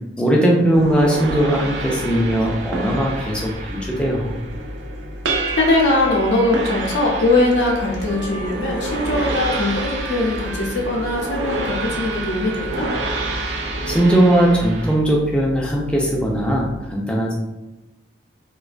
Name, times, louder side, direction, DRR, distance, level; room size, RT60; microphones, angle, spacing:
voice 1, 0.2-4.4 13.9-17.3, right 1 dB, 5° left, -2 dB, 0.3 m, -19 dB
sound 1, 0.7-15.0, right 2 dB, 70° right, 0.4 m, -28 dB
sound 2, 1.2-16.8, left 1 dB, 90° right, 0.8 m, -37 dB
voice 2, 5.5-12.9, left 2 dB, 70° left, -1 dB, 0.5 m, -20 dB
Harmonica, 7.0-13.6, right 4 dB, 50° right, 0.8 m, -37 dB
2.4 x 2.1 x 2.4 m, 1.0 s
head